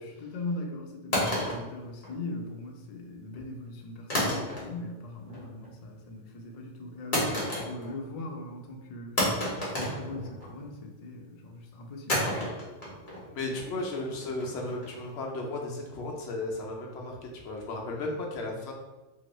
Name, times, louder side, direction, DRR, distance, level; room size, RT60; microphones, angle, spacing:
voice 1, 0.0-9.5 9.7-12.4, left 2 dB, 85° left, 1 dB, 0.3 m, -40 dB
sound 1, 1.1-2.5 4.1-4.9 5.3-5.7 7.1-8.1 8.4-8.5 9.2-10.7 12.1-15.1, left 1 dB, 45° left, 1.1 m, -31 dB
voice 2, 13.3-18.7, left 2 dB, 65° left, 0 dB, 0.8 m, -35 dB
2.9 x 2.5 x 3.0 m, 1.1 s
omnidirectional pair, 1.3 m